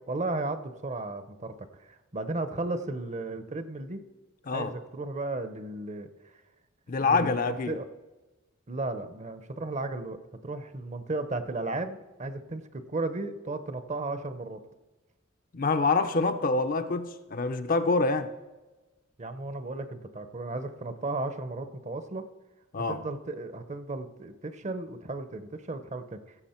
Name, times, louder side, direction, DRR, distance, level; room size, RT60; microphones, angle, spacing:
voice 1, 0.1-4.0 4.5-6.1 7.0-7.9 8.7-10.2 10.4-14.6 19.2-22.2 22.9-26.4, right 2 dB, 35° right, 0.7 m, -35 dB
voice 2, 6.9-7.8 15.5-18.3 22.7-23.0, left 3 dB, 40° left, 0.6 m, -26 dB
16.0 x 7.2 x 4.4 m
head